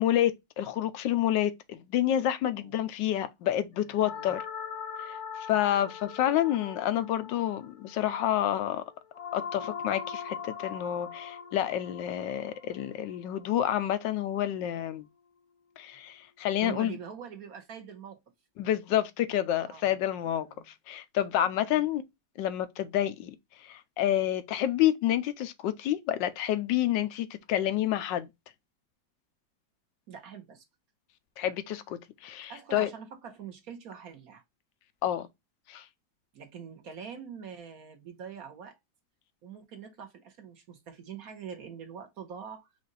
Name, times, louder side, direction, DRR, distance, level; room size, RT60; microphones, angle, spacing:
voice 1, 0.0-4.4 5.1-8.8 9.3-15.0 15.8-17.0 18.6-20.5 20.9-22.0 22.4-23.3 23.6-28.3 31.4-32.9 35.0-35.3 35.7-35.8, left 12 dB, 80° left, 1.3 m, -29 dB
voice 2, 3.7-4.3 16.6-18.2 19.6-20.0 20.2-20.7 21.5-21.9 30.1-30.6 32.5-34.4 36.3-38.8 39.4-42.7, right 7 dB, 55° right, 1.3 m, -44 dB
sound 1, 4.0-14.2, left 7 dB, 50° left, 1.0 m, -41 dB
5.1 x 2.5 x 3.9 m
omnidirectional pair, 2.0 m